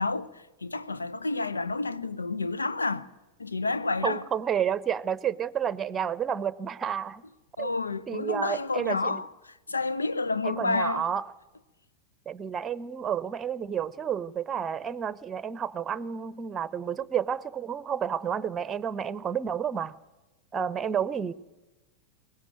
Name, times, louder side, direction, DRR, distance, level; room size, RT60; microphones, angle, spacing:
voice 1, 0.0-3.1 3.4-4.2 7.6-11.1, left 3 dB, 80° left, 1.0 m, -30 dB
voice 2, 4.0-7.2 7.6-7.7 8.1-9.2 10.4-11.3 12.3-19.9 20.5-21.3, right 8 dB, 20° right, 0.9 m, -30 dB
23.0 x 19.5 x 9.1 m
figure-of-eight pair, 90°, 0 cm